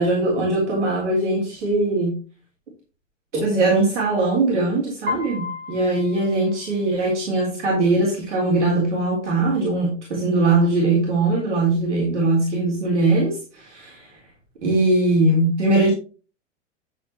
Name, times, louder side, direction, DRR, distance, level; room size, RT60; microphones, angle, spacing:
voice 1, 0.0-2.2 3.3-14.1 14.6-15.9, right 2 dB, 70° right, -3 dB, 4.2 m, -21 dB
Piano, 5.1-7.1, left 5 dB, 25° right, 1.8 m, -33 dB
11.0 x 7.3 x 3.0 m, 0.34 s
figure-of-eight pair, 95°, 37 cm